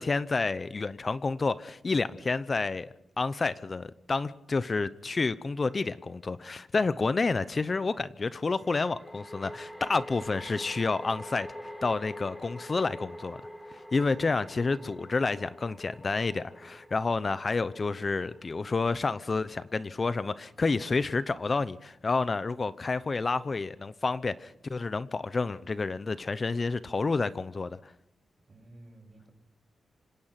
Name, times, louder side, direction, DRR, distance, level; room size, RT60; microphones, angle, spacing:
voice 1, 0.0-2.9 3.2-11.5 11.8-13.4 13.9-27.9, left 3 dB, 40° left, 0.7 m, -29 dB
sound 1, 8.5-19.9, equal, 5° left, 4.2 m, -46 dB
voice 2, 14.0-14.9 28.5-29.3, right 1 dB, 40° right, 7.2 m, -52 dB
26.5 x 17.0 x 5.9 m
cardioid pair, 75°, 0 cm